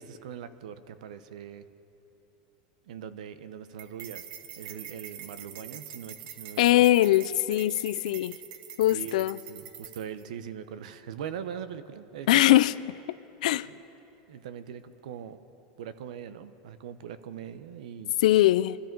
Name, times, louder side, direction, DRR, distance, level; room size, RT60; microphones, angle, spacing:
voice 1, 0.0-1.7 2.9-4.2 4.6-6.8 8.9-12.7 13.4-13.8 14.3-15.4 15.8-18.2, right 8 dB, 85° right, 12 dB, 0.9 m, -41 dB
sound 1, 3.8-10.2, right 9 dB, 40° right, 0.9 m, -44 dB
voice 2, 6.6-8.4 8.8-9.4 12.3-12.7 13.4-13.7 18.2-18.8, left 15 dB, 75° left, 16 dB, 0.4 m, -21 dB
24.5 x 13.0 x 4.6 m, 3.0 s
supercardioid pair, 170°, 4 cm